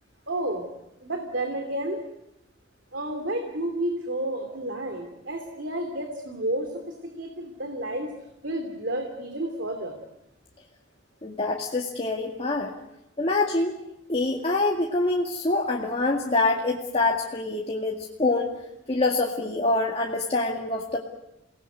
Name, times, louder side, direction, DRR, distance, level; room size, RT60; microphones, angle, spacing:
voice 1, 0.3-0.7 1.0-2.0 2.9-8.1 8.4-10.0, right 1 dB, 70° right, 5 dB, 3.1 m, -31 dB
voice 2, 11.2-12.7 13.2-13.8 14.1-18.5 18.9-21.0, left 2 dB, 30° left, 0 dB, 2.1 m, -25 dB
29.0 x 19.5 x 8.0 m, 0.88 s
head